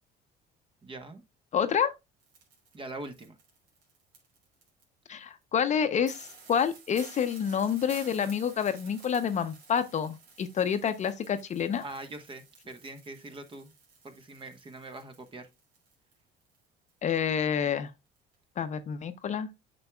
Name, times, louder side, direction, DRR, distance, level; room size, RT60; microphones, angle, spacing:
voice 1, 0.8-1.2 2.7-3.4 11.8-13.7 14.0-15.5, right 2 dB, 25° right, 1.1 m, -43 dB
voice 2, 1.5-1.9 5.1-11.8 17.0-17.9 18.6-19.5, left 7 dB, 40° left, 0.7 m, -28 dB
sound 1, 2.2-4.8 5.4-5.5 5.7-5.8 6.0-16.1 16.4-17.4 17.7-17.8 18.2-18.3, right 4 dB, 75° right, 3.2 m, -53 dB
8.0 x 5.9 x 2.3 m
cardioid pair, 120°, 19 cm